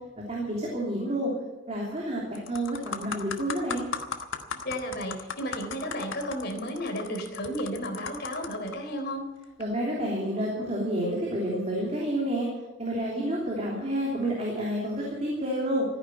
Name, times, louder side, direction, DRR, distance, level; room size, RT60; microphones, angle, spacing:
voice 1, 0.3-1.3 1.7-3.9 9.6-12.5 12.8-15.8, right 1 dB, 35° right, -3 dB, 3.2 m, -29 dB
sound 1, 1.7-2.0 2.3-8.7 9.4-9.6, left 5 dB, 75° left, 1.3 m, -37 dB
voice 2, 4.6-9.2, equal, 55° left, 3 dB, 3.6 m, -33 dB
14.5 x 10.5 x 8.9 m, 1.1 s
head